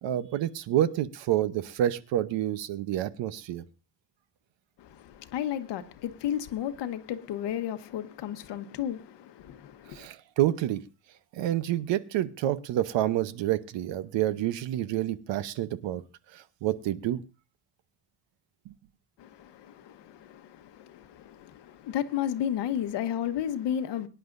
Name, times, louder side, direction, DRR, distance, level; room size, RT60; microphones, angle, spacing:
voice 1, 0.0-3.6 9.9-10.8 11.3-16.0 16.3-17.2 18.7-18.8, right 12 dB, 85° right, 1.0 m, -28 dB
voice 2, 4.8-10.1 19.2-24.1, left 10 dB, 75° left, 1.2 m, -33 dB
23.0 x 10.5 x 2.6 m
cardioid pair, 170°, 43 cm